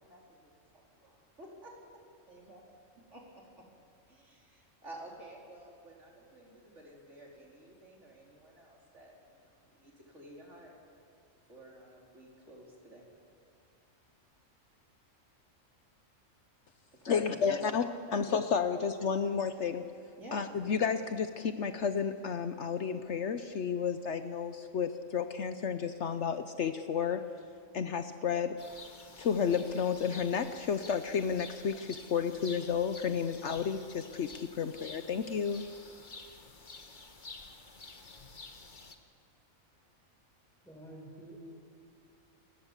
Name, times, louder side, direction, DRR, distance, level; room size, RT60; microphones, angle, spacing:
voice 1, 0.0-1.7 2.3-2.7 3.1-3.5 4.1-10.8 11.5-13.1 17.0-17.7 18.1-18.2 20.2-20.4, right 1 dB, 60° right, -2 dB, 4.4 m, -52 dB
voice 2, 17.0-17.8 18.1-19.8 20.3-27.2 27.7-28.6 29.2-35.6, left 6 dB, 60° left, 9 dB, 1.1 m, -31 dB
sound 1, 28.6-38.9, left 3 dB, 35° left, 1.6 m, -50 dB
voice 3, 40.7-41.5, right 1 dB, ahead, -3 dB, 7.0 m, -48 dB
27.5 x 20.5 x 7.4 m, 2.5 s
omnidirectional pair, 1.4 m